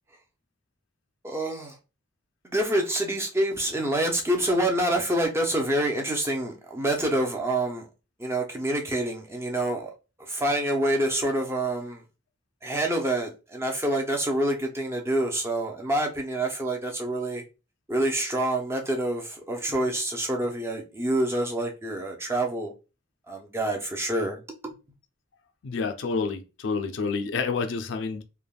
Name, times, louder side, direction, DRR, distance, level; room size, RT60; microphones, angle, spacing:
voice 1, 1.2-1.8 2.4-7.9 8.2-9.9 10.2-12.0 12.6-17.4 17.9-22.7 23.3-24.7, right 1 dB, 15° right, 0.5 m, -27 dB
voice 2, 25.6-28.2, left 4 dB, 65° left, 0.4 m, -29 dB
3.3 x 2.1 x 2.2 m
head